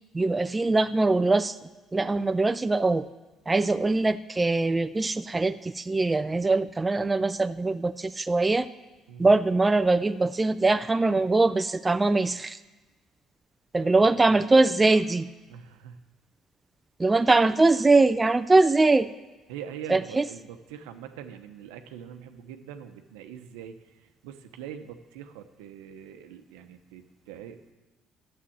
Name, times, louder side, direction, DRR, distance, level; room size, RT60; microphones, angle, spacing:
voice 1, 0.1-1.6 1.9-3.1 3.5-8.7 9.2-12.6 13.7-15.3 17.0-19.1 19.9-20.2, right 3 dB, 20° right, 12 dB, 0.5 m, -22 dB
voice 2, 13.9-14.5 14.8-15.0 15.5-16.0 19.5-23.8 24.2-27.7, right 9 dB, 85° right, 7 dB, 0.9 m, -43 dB
9.9 x 7.5 x 8.6 m, 1.2 s
hypercardioid pair, 65°, 0 cm